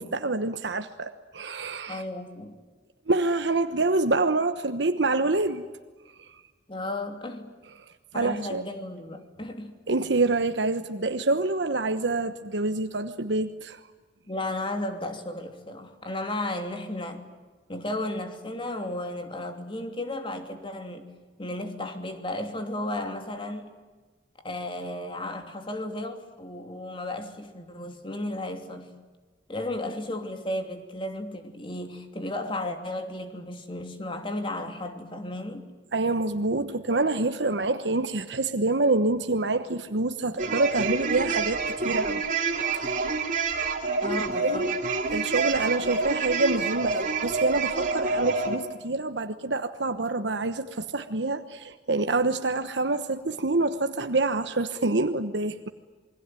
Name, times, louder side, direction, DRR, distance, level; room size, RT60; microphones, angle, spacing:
voice 1, 0.0-2.0 3.1-5.7 6.2-6.4 8.1-8.6 9.9-13.8 35.9-41.6 41.8-43.1 44.4-44.6 45.1-55.7, right 3 dB, 75° right, 1.2 m, -26 dB
voice 2, 1.9-2.6 6.7-7.5 8.1-9.8 14.3-17.2 17.7-21.1 21.4-23.7 24.4-28.9 29.5-35.7 44.0-44.7, left 1 dB, 30° left, 2.9 m, -34 dB
sound 1, 40.4-48.6, right 4 dB, 45° right, 3.1 m, -28 dB
28.0 x 21.5 x 9.2 m
head